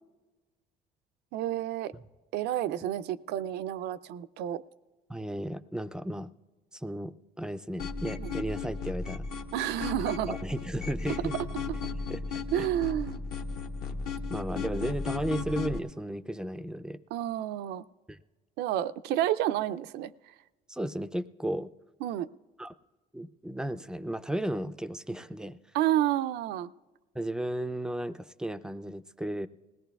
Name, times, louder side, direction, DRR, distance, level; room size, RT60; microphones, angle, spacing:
voice 1, 1.3-1.9 2.3-4.6 8.2-8.3 9.5-10.3 12.5-13.2 17.1-17.8 18.6-20.1 22.0-22.3 25.7-26.7, right 12 dB, 80° right, 14 dB, 0.4 m, -30 dB
voice 2, 5.1-6.3 6.7-9.2 10.3-11.3 12.1-12.7 14.3-17.0 18.1-18.2 20.7-21.7 22.6-22.7 23.1-25.6 27.1-29.5, right 1 dB, 5° right, 12 dB, 0.3 m, -34 dB
sound 1, 7.8-15.8, left 4 dB, 60° left, 1.0 m, -35 dB
20.5 x 17.0 x 2.3 m, 1.2 s
cardioid pair, 110°, 17 cm